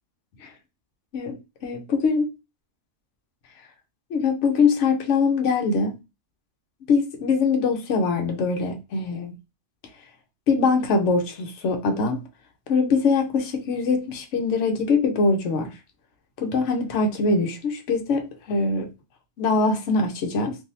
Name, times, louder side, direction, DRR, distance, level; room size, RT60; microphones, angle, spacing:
voice 1, 1.6-2.3 4.1-5.9 6.9-9.3 10.5-12.2 12.7-15.7 16.4-18.9 19.4-20.6, left 4 dB, 70° left, 1.1 m, -22 dB
3.5 x 2.6 x 2.7 m
omnidirectional pair, 1.3 m